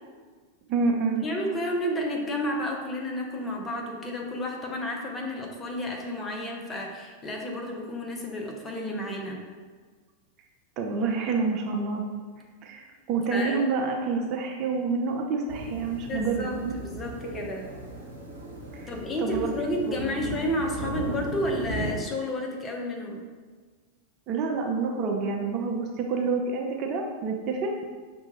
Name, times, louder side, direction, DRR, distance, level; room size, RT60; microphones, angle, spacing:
voice 1, 0.7-1.3 10.8-12.0 12.6-16.7 18.7-18.9 19.2-19.5 19.8-20.3 24.3-27.8, right 4 dB, 35° right, 2 dB, 0.4 m, -28 dB
voice 2, 1.2-9.4 13.3-13.7 16.1-17.7 18.9-23.2, left 1 dB, 20° left, 0 dB, 0.6 m, -31 dB
sound 1, 15.5-22.0, right 1 dB, 80° right, 0.8 m, -37 dB
5.8 x 2.3 x 2.8 m, 1.5 s
figure-of-eight pair, 90°, 0 cm